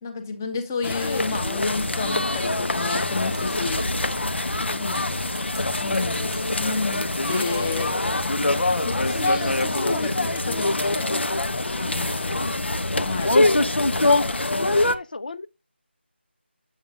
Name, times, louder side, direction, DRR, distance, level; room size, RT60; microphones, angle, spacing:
voice 1, 0.0-3.9 4.7-4.9 5.7-8.0 8.7-11.1 11.8-12.6 13.0-13.3, left 4 dB, 15° left, 1.1 m, -31 dB
sound 1, 0.8-15.0, left 2 dB, 70° left, 1.2 m, -24 dB
sound 2, 3.3-3.7 4.7-7.9 8.5-8.8 9.6-9.8 10.8-11.2 11.9-12.2 13.1-13.2 14.0-14.2, right 4 dB, 10° right, 1.3 m, -46 dB
voice 2, 4.4-5.1 12.2-12.6 14.5-15.5, left 3 dB, 45° left, 0.5 m, -37 dB
8.8 x 8.0 x 2.5 m
figure-of-eight pair, 170°, 6 cm